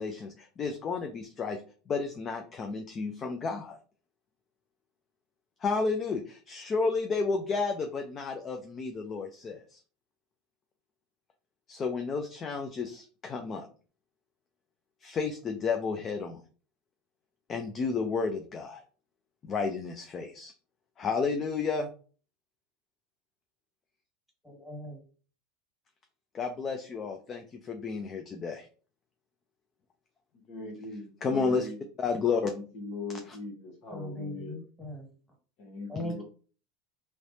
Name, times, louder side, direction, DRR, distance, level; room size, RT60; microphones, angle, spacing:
voice 1, 0.0-1.6 1.9-3.8 5.6-9.8 11.7-13.7 15.0-16.4 17.5-18.8 19.4-20.5 21.0-21.9 26.3-28.7 31.2-31.7 32.0-32.5 33.3-33.4, left 4 dB, 35° left, 5 dB, 0.5 m, -31 dB
voice 2, 24.4-25.0 33.9-35.1 35.9-36.2, left 1 dB, ahead, 0 dB, 1.7 m, -39 dB
voice 3, 30.5-31.8 32.5-34.6 35.6-36.2, left 2 dB, 60° left, 1 dB, 1.2 m, -40 dB
3.2 x 3.1 x 2.7 m, 0.39 s
supercardioid pair, 105°, 0 cm